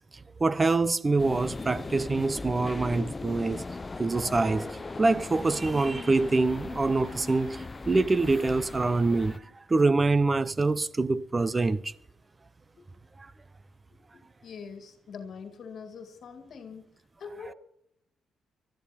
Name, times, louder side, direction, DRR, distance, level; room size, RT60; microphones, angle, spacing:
voice 1, 0.4-3.6 4.0-11.9, right 3 dB, 25° right, 0.7 m, -25 dB
sound 1, 1.2-9.4, left 3 dB, 25° left, 0.6 m, -38 dB
sound 2, 4.0-5.5 5.9-8.0 8.3-9.6 11.9-12.0, right 3 dB, 65° right, 6.5 m, -55 dB
voice 2, 14.4-16.9 17.2-17.5, left 5 dB, 55° left, 2.1 m, -43 dB
20.5 x 13.0 x 4.3 m
cardioid pair, 90°, 0 cm